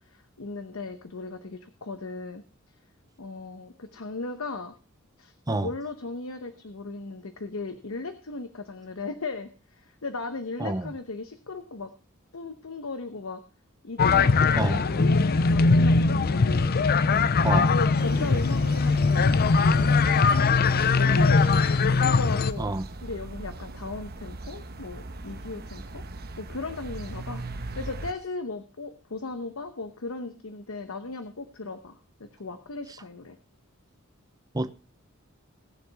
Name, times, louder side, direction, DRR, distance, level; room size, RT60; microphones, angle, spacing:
voice 1, 0.0-2.4 3.2-4.7 5.2-11.9 12.3-13.4 13.8-16.7 17.4-21.6 22.0-22.7 23.0-26.0 26.4-33.4, left 3 dB, 75° left, 1.0 m, -36 dB
voice 2, 10.6-10.9 14.6-14.8 17.4-17.7 22.6-22.9 34.5-34.7, right 2 dB, 20° right, 0.7 m, -28 dB
sound 1, 14.0-22.5, left 4 dB, 45° left, 0.5 m, -21 dB
sound 2, 18.0-28.1, right 2 dB, 50° right, 1.0 m, -39 dB
20.0 x 7.1 x 3.4 m
head